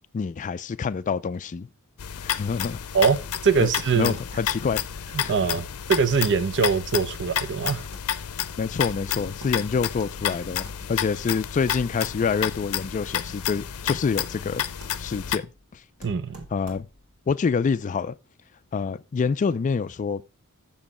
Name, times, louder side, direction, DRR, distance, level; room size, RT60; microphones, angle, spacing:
voice 1, 0.1-1.7 2.2-2.8 3.6-3.7 4.0-5.3 8.6-14.7 15.0-15.8 16.5-16.9 17.3-18.1 18.7-20.2, left 5 dB, 35° left, 0.3 m, -27 dB
sound 1, 2.0-15.4, left 10 dB, 80° left, 0.6 m, -31 dB
voice 2, 2.9-4.2 5.1-7.9 16.0-16.5, right 5 dB, 55° right, 0.7 m, -23 dB
sound 2, 3.1-17.2, equal, 90° right, 2.9 m, -50 dB
7.5 x 7.0 x 4.2 m
head